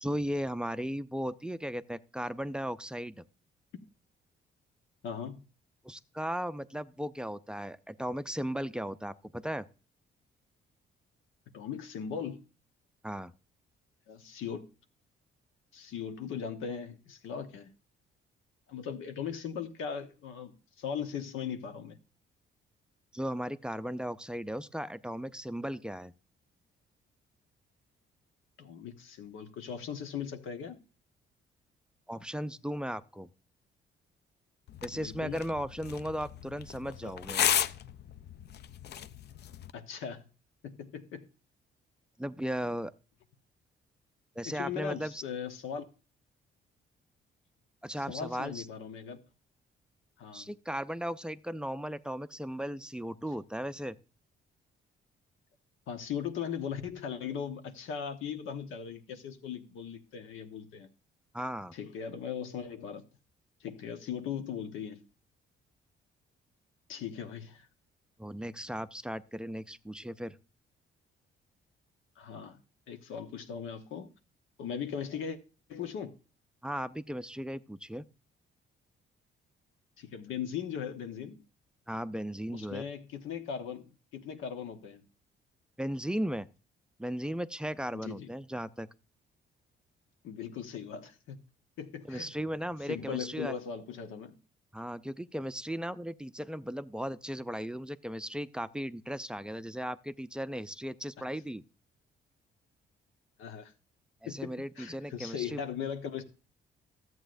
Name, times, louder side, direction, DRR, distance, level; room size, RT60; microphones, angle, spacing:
voice 1, 0.0-3.2 5.8-9.7 13.0-13.3 23.1-26.1 32.1-33.3 34.8-37.5 42.2-42.9 44.4-45.2 47.8-48.7 50.3-54.0 61.3-61.7 68.2-70.4 76.6-78.0 81.9-82.9 85.8-86.5 87.0-88.9 92.1-93.5 94.7-101.6 104.2-105.6, equal, 5° right, 0.4 m, -36 dB
voice 2, 5.0-5.4 11.5-12.4 14.1-14.7 15.7-17.7 18.7-20.5 20.8-22.0 28.6-30.8 34.9-35.4 37.0-37.1 39.7-40.2 40.6-41.3 44.4-45.9 47.9-49.2 50.2-50.5 55.9-60.9 61.7-63.0 63.6-65.0 66.9-67.7 72.2-72.6 72.9-74.1 74.6-75.4 75.7-76.1 80.0-81.4 82.5-85.0 87.9-88.3 90.2-91.4 91.8-92.3 92.9-94.4 103.4-103.7 104.3-106.2, left 7 dB, 85° left, 1.2 m, -39 dB
sound 1, 34.7-39.7, left 10 dB, 55° left, 0.5 m, -34 dB
13.5 x 8.0 x 2.6 m
cardioid pair, 90°, 20 cm